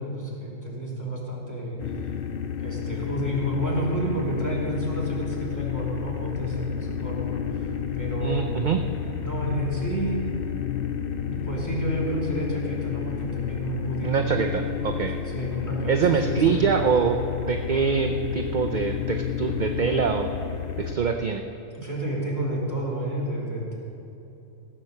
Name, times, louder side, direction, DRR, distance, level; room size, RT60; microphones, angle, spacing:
voice 1, 0.0-1.8 2.6-7.7 7.9-8.6 9.2-10.2 11.2-14.5 15.2-16.7 21.7-23.7, right 1 dB, 15° left, -5 dB, 2.7 m, -31 dB
sound 1, 1.8-21.0, left 8 dB, 50° left, 0.9 m, -30 dB
voice 2, 8.2-8.8 14.0-15.1 15.9-20.3 20.8-21.4, right 6 dB, 50° right, 4 dB, 0.6 m, -24 dB
16.0 x 7.6 x 6.5 m, 2.9 s
omnidirectional pair, 1.4 m